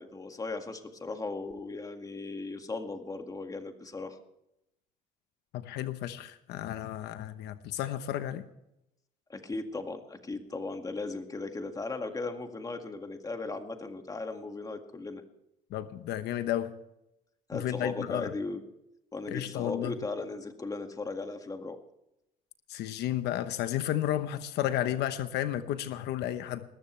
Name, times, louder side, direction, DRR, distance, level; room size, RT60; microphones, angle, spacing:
voice 1, 0.0-4.2 9.3-15.2 17.5-18.6 19.1-21.8, left 3 dB, 20° left, 5 dB, 2.0 m, -37 dB
voice 2, 5.5-8.5 15.7-16.7 17.5-18.3 19.3-19.9 22.7-26.6, left 12 dB, 80° left, 11 dB, 1.0 m, -32 dB
20.0 x 14.0 x 3.3 m, 0.84 s
cardioid pair, 110°, 17 cm